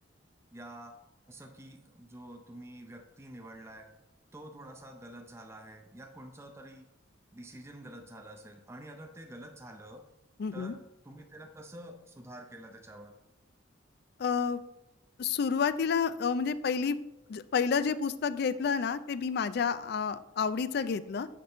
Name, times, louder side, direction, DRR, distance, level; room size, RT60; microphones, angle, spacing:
voice 1, 0.5-0.9 1.3-3.9 4.3-6.9 7.3-10.0 10.5-10.8 11.0-13.1, right 1 dB, 15° right, 3 dB, 0.5 m, -48 dB
voice 2, 10.4-10.7 14.2-14.6 15.2-17.0 17.3-21.3, left 6 dB, 55° left, 14 dB, 0.4 m, -30 dB
6.6 x 5.3 x 4.3 m, 0.91 s
head